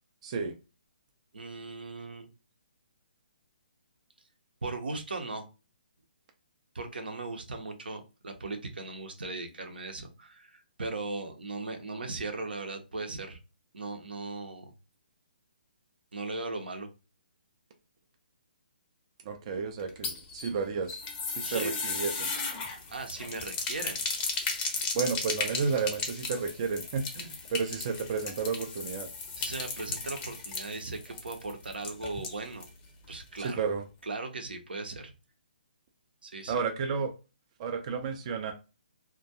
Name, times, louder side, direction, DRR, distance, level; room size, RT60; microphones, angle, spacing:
voice 1, 0.2-0.5 19.3-21.0 21.3-22.3 24.9-29.1 33.4-33.8 36.5-37.1 37.6-38.5, right 5 dB, 35° right, 0.4 m, -32 dB
voice 2, 1.3-2.3 4.6-5.5 6.7-13.4 13.7-14.7 16.1-16.9 21.4-21.8 22.7-24.1 29.4-32.7 33.1-33.6 34.0-35.1 36.2-36.5, right 3 dB, 80° right, 0.7 m, -38 dB
sound 1, 19.8-32.8 33.0-33.1 33.4-33.5, left 4 dB, 20° left, 0.5 m, -36 dB
2.2 x 2.2 x 2.7 m
hypercardioid pair, 145°, 5 cm